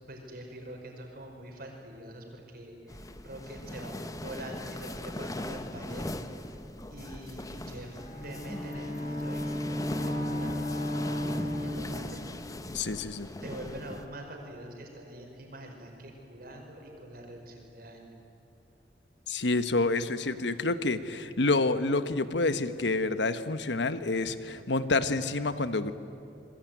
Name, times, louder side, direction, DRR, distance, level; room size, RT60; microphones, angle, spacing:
voice 1, 0.1-3.0 3.2-3.9 4.2-6.1 6.9-12.2 13.4-18.1, right 1 dB, 60° right, 2 dB, 5.2 m, -45 dB
sound 1, 2.9-14.1, left 1 dB, 20° left, 1.1 m, -40 dB
Bowed string instrument, 7.8-12.5, left 1 dB, 45° left, 4.4 m, -34 dB
voice 2, 12.7-13.3 19.3-25.9, left 3 dB, 85° left, 12 dB, 1.2 m, -28 dB
27.0 x 21.5 x 9.3 m, 2.8 s
head